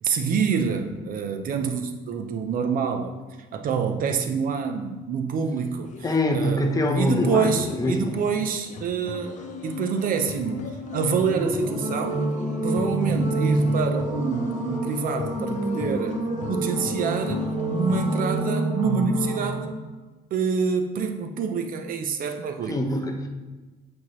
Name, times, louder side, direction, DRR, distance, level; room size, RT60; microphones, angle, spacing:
voice 1, 0.0-3.1 3.5-5.9 6.3-6.7 6.9-10.6 10.9-12.2 12.6-16.2 16.5-19.7 20.3-22.8, right 6 dB, 55° right, 6 dB, 0.8 m, -27 dB
sound 1, 5.8-18.4, left 6 dB, 45° left, 0.5 m, -42 dB
voice 2, 6.0-8.1 22.7-23.3, left 1 dB, 20° left, 4 dB, 0.9 m, -24 dB
sound 2, 9.1-19.6, right 1 dB, 20° right, 1.5 m, -28 dB
8.4 x 4.6 x 3.2 m, 1.2 s
cardioid pair, 110°, 17 cm